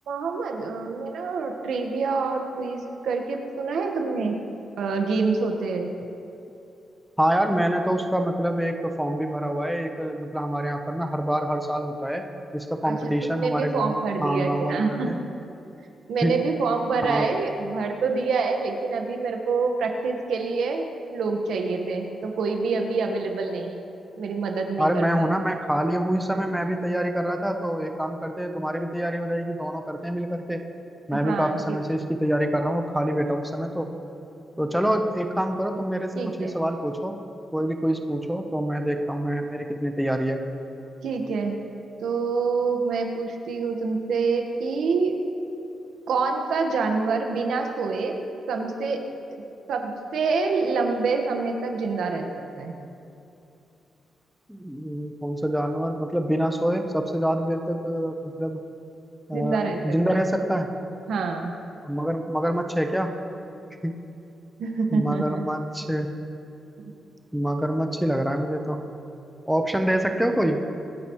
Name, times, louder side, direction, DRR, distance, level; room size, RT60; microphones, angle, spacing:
voice 1, 0.1-4.4 4.8-5.9 12.8-15.2 16.1-23.8 24.2-25.1 31.1-31.8 36.1-36.5 41.0-41.6 42.0-45.2 46.1-48.1 48.5-49.0 49.3-49.4 49.7-52.3 52.6-52.8 59.3-60.2 61.1-61.5 64.6-65.4, right 4 dB, 80° right, 3 dB, 1.5 m, -26 dB
voice 2, 7.2-12.3 12.5-15.2 16.2-16.4 17.0-17.3 24.8-30.6 31.1-33.9 34.6-37.2 37.5-40.4 54.5-58.6 59.3-60.8 61.8-63.3 63.8-64.0 64.9-66.1 67.3-68.8 69.5-70.6, equal, 5° right, 4 dB, 0.9 m, -26 dB
25.5 x 9.1 x 3.2 m, 2.7 s
cardioid pair, 105°, 0 cm